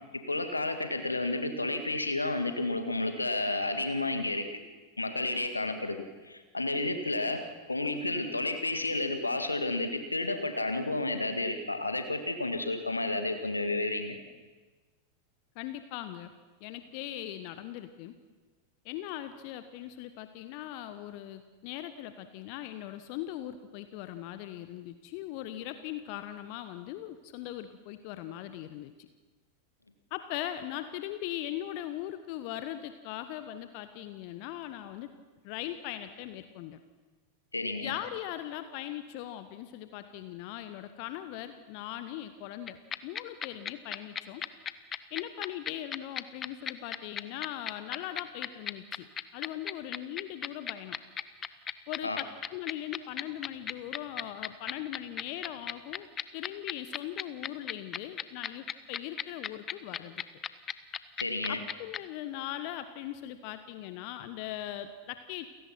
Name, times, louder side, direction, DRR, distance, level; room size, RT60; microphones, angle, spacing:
voice 1, 0.3-4.4 5.0-7.4 7.7-14.2 37.5-37.9 52.0-52.2 61.2-61.6, left 2 dB, 80° left, 7 dB, 1.9 m, -31 dB
voice 2, 15.5-16.3 16.6-18.1 18.8-29.1 30.1-35.1 35.4-36.8 37.8-44.4 45.1-49.1 49.3-51.0 51.9-56.1 56.3-60.2 61.5-65.5, left 12 dB, 45° left, 11 dB, 1.1 m, -40 dB
sound 1, 42.7-62.0, left 8 dB, 25° left, 0.9 m, -34 dB
29.0 x 17.0 x 6.0 m, 1.3 s
figure-of-eight pair, 90°, 0 cm